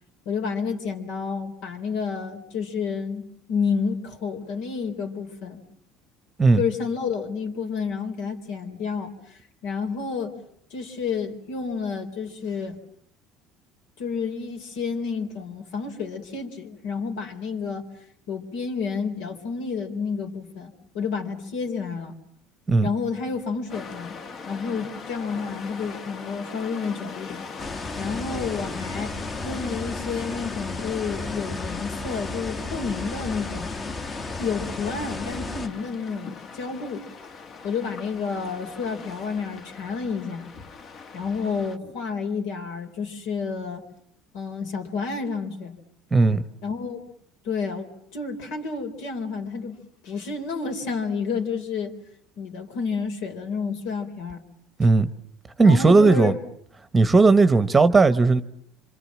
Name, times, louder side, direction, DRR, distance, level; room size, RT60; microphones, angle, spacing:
voice 1, 0.3-5.6 6.6-10.4 10.7-12.8 14.0-17.9 18.3-22.2 22.8-24.2 24.5-29.2 29.4-33.7 34.4-37.0 37.6-40.5 41.1-43.8 44.3-45.8 46.6-47.0 47.4-51.9 52.4-54.4 55.6-56.4, left 5 dB, 75° left, 4.1 m, -30 dB
sound 1, 23.7-41.8, left 5 dB, 40° left, 1.6 m, -41 dB
sound 2, 27.6-35.7, left 3 dB, 25° left, 1.5 m, -33 dB
voice 2, 46.1-46.4 54.8-55.1 55.6-56.4 56.9-58.4, right 3 dB, 15° right, 1.1 m, -16 dB
26.5 x 26.0 x 7.5 m
cardioid pair, 135°, 0 cm